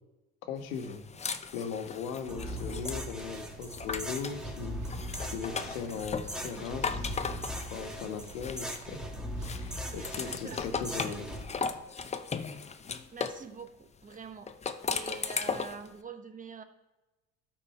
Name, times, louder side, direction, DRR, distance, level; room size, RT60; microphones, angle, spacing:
voice 1, 0.5-1.0 1.5-5.1 5.3-7.1 7.7-9.0 9.4-11.3, left 6 dB, 85° left, 7 dB, 1.2 m, -38 dB
sound 1, 0.7-4.4 4.8-9.0 9.4-13.4 14.5-15.9, left 5 dB, 15° left, 0.5 m, -37 dB
sound 2, 2.3-11.4, equal, ahead, 1.5 m, -39 dB
sound 3, 2.5-11.9, right 9 dB, 55° right, 0.8 m, -52 dB
voice 2, 9.9-10.6 11.0-11.2 13.1-14.5 14.9-16.6, right 5 dB, 20° right, 7 dB, 1.1 m, -45 dB
12.5 x 4.3 x 4.6 m, 1.1 s
hypercardioid pair, 85°, 41 cm